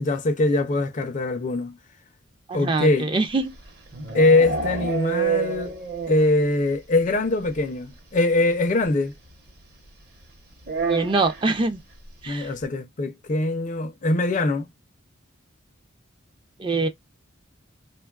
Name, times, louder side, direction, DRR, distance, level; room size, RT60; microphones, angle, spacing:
voice 1, 0.0-1.8 2.5-3.1 4.1-5.7 6.1-9.1 12.3-14.7, left 2 dB, 35° left, 0.4 m, -22 dB
voice 2, 2.5-3.5 10.9-11.8 12.2-12.5 16.6-16.9, right 3 dB, 25° right, 0.4 m, -24 dB
sound 1, 3.4-6.4 6.7-6.8 7.1-7.2 7.4-7.6 8.8-8.9 10.6-11.5, right 5 dB, 50° right, 0.9 m, -28 dB
3.2 x 2.3 x 2.3 m
head